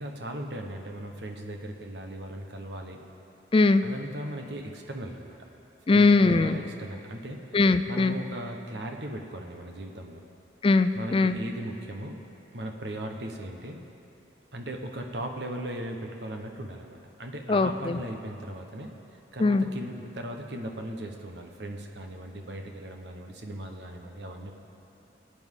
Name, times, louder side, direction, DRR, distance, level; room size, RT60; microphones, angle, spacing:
voice 1, 0.0-3.0 3.8-5.4 5.9-7.4 7.9-10.2 10.9-12.2 12.5-13.8 14.5-18.9 19.3-24.5, right 1 dB, 75° right, 3 dB, 1.2 m, -38 dB
voice 2, 3.5-3.8 5.9-6.6 7.5-8.2 10.6-11.4 17.5-18.0 19.4-19.7, left 3 dB, 30° left, 10 dB, 0.4 m, -21 dB
23.0 x 9.0 x 3.8 m, 2.8 s
head